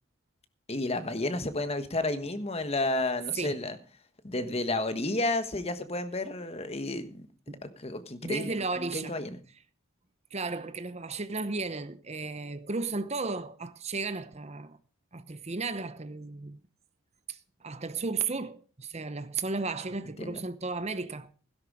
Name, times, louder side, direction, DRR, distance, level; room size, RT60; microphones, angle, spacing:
voice 1, 0.7-3.8 4.2-7.3 7.6-8.5 8.8-9.4 20.2-20.4, left 2 dB, 30° left, 1.3 m, -31 dB
voice 2, 8.2-9.2 10.3-14.8 15.1-16.6 17.3-21.3, right 3 dB, 30° right, 0.9 m, -34 dB
16.5 x 11.0 x 4.9 m
head